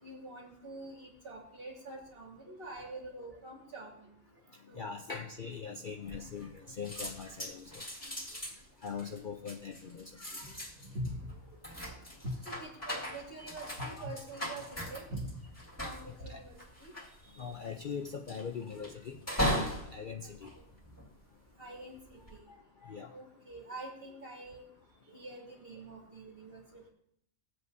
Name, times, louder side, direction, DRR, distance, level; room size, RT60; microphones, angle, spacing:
voice 1, 0.0-4.1 4.6-4.9 6.0-6.3 6.6-6.7 8.0-8.1 10.4-10.5 10.8-11.2 12.5-15.4 15.8-16.9 20.2-20.4 21.6-22.4 23.1-24.6 25.1-26.9, right 1 dB, 45° right, -2 dB, 2.6 m, -45 dB
voice 2, 4.7-7.8 8.8-10.6 14.0-14.1 16.3-16.4 17.2-19.2 19.5-20.5 22.8-23.1, left 6 dB, 45° left, 2 dB, 0.7 m, -42 dB
sound 1, 6.1-6.6 6.8-21.4 22.0-22.4, equal, 10° left, 1.9 m, -39 dB
20.0 x 7.9 x 2.7 m, 0.70 s
omnidirectional pair, 1.4 m